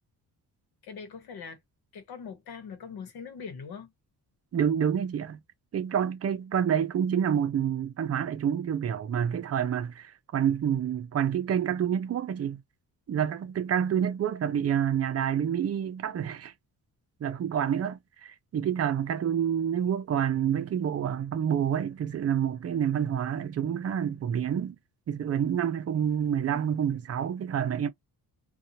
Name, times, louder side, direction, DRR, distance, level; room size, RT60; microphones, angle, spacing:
voice 1, 0.8-1.6 1.9-3.9, left 6 dB, 80° left, 1.0 m, -42 dB
voice 2, 4.5-5.4 5.7-12.6 13.1-16.5 17.2-24.8 25.1-27.9, right 8 dB, 40° right, 0.5 m, -28 dB
2.7 x 2.3 x 2.7 m
cardioid pair, 115°, 37 cm